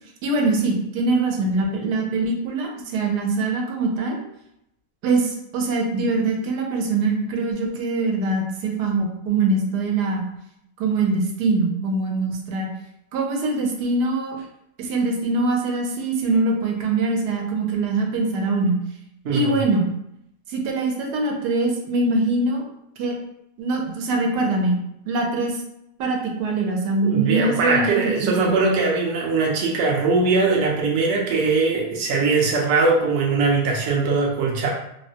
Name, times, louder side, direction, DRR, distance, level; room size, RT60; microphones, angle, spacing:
voice 1, 0.2-4.2 5.0-10.2 10.8-12.7 13.1-14.4 14.8-18.8 19.3-19.9 20.5-22.6 23.0-23.2 23.6-24.8 25.0-25.6 26.0-28.5, right 3 dB, 90° right, 1 dB, 1.2 m, -23 dB
voice 2, 19.2-19.6 27.0-34.7, right 3 dB, 60° right, -2 dB, 0.8 m, -21 dB
3.3 x 2.1 x 2.7 m, 0.79 s
omnidirectional pair, 1.7 m